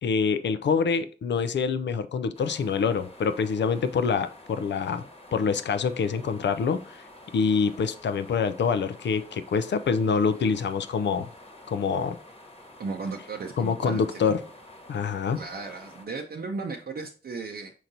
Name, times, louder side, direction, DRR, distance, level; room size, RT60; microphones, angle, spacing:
voice 1, 0.0-5.0 5.3-7.0 7.3-11.3 11.7-12.2 13.6-14.4 14.9-15.4, left 5 dB, 75° left, 0.4 m, -26 dB
sound 1, 2.3-16.1, left 1 dB, 30° left, 1.1 m, -49 dB
voice 2, 12.8-14.4 15.3-17.7, right 4 dB, 60° right, 0.6 m, -35 dB
4.5 x 3.8 x 2.7 m
cardioid pair, 40°, 18 cm